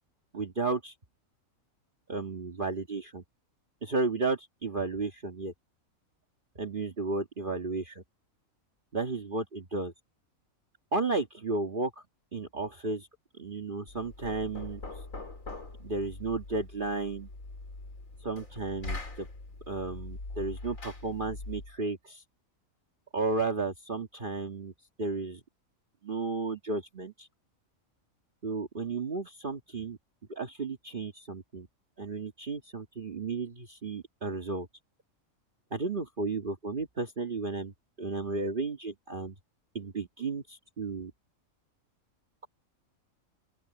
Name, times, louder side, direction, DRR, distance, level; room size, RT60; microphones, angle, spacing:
voice 1, 0.3-0.9 2.1-3.2 3.8-5.5 6.6-8.0 8.9-9.9 10.9-11.9 12.3-13.1 13.4-14.8 15.8-17.3 18.2-19.3 19.7-22.2 23.1-24.7 25.0-25.4 26.0-27.3 28.4-30.0 30.3-31.7 32.0-34.7 35.7-37.7 38.0-39.3 39.8-41.1, right 3 dB, 40° right, 1.7 m, -33 dB
Knock, 13.9-21.8, left 2 dB, 70° left, 4.2 m, -42 dB
open air
omnidirectional pair, 1.4 m